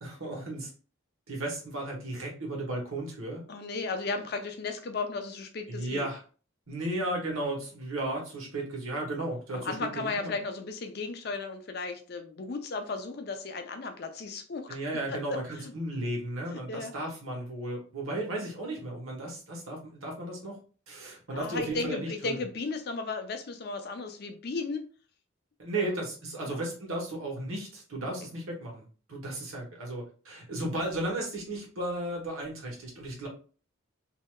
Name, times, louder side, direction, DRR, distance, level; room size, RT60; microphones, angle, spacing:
voice 1, 0.0-0.7 1.3-3.4 5.7-6.2 6.7-10.3 14.7-20.5 20.9-22.3 25.6-33.3, right 1 dB, 85° right, -1 dB, 1.2 m, -34 dB
voice 2, 3.5-6.1 9.5-15.7 16.5-16.9 21.3-24.9 25.7-26.0 26.4-26.6, left 4 dB, 50° left, 6 dB, 0.5 m, -35 dB
3.2 x 2.7 x 2.2 m, 0.39 s
head